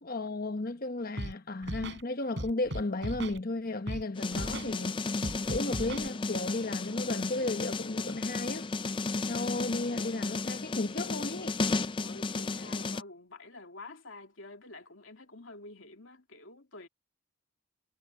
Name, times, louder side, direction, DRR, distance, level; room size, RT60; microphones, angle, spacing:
voice 1, 0.0-5.0 5.5-8.7 9.2-11.6, left 2 dB, 45° left, 1.0 m, -34 dB
Scratching (performance technique), 1.2-1.3 1.6-2.0 2.4-3.4 3.9-4.0 4.3-4.7 5.2-6.1, right 1 dB, 55° right, 6.1 m, -36 dB
sound 1, 4.2-13.0, left 3 dB, 25° left, 0.4 m, -34 dB
voice 2, 12.0-16.9, left 2 dB, 70° left, 2.7 m, -48 dB
head